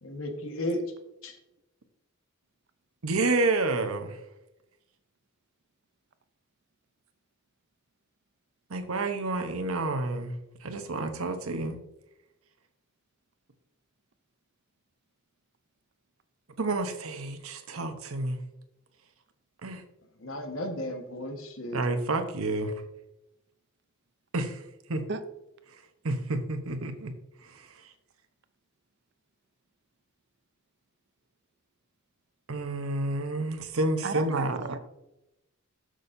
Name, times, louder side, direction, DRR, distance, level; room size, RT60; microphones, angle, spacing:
voice 1, 0.0-0.8 1.2-1.4 20.2-21.9, left 1 dB, 70° left, 4 dB, 1.4 m, -34 dB
voice 2, 3.0-4.2 8.7-10.3 10.6-11.8 16.6-18.4 19.6-19.8 21.7-22.7 24.3-24.6 24.9-25.0 26.0-27.1 27.4-27.7 32.5-34.6, right 2 dB, 85° right, 7 dB, 1.0 m, -29 dB
voice 3, 34.0-34.8, right 4 dB, 55° right, 11 dB, 0.6 m, -34 dB
12.5 x 6.3 x 2.7 m, 0.92 s
head